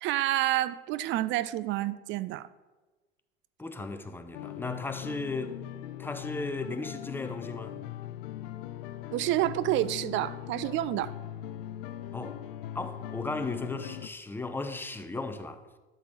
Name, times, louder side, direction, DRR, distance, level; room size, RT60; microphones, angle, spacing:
voice 1, 0.0-2.5 9.1-11.1, right 14 dB, 40° right, 0.4 m, -29 dB
voice 2, 3.6-5.6 6.0-7.8 12.1-12.4 12.7-15.6, left 3 dB, 5° left, 0.7 m, -36 dB
sound 1, 4.3-14.1, left 12 dB, 60° left, 0.5 m, -40 dB
11.5 x 4.0 x 6.1 m
hypercardioid pair, 75°, 31 cm